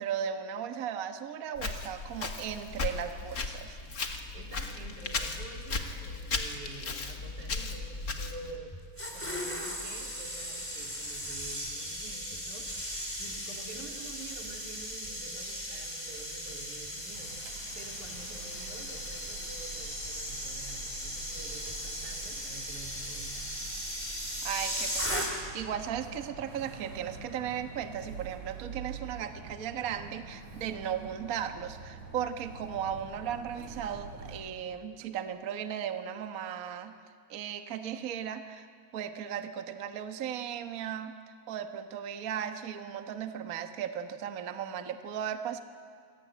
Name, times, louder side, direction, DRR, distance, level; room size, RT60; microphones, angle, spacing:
voice 1, 0.0-3.8 24.4-36.9 37.3-38.7 38.9-45.6, right 9 dB, 50° right, 7 dB, 1.0 m, -36 dB
Walk footsteps, 1.6-8.6, left 3 dB, 35° left, 2.0 m, -36 dB
voice 2, 4.3-8.7 9.1-12.7 13.2-17.3 17.8-23.6, right 3 dB, 90° right, 1 dB, 4.7 m, -48 dB
sound 1, 8.7-25.7 25.9-26.2, equal, 5° left, 4.0 m, -37 dB
sound 2, 17.1-34.4, right 4 dB, 70° right, 4.9 m, -46 dB
28.0 x 22.5 x 9.2 m, 2.1 s
omnidirectional pair, 3.3 m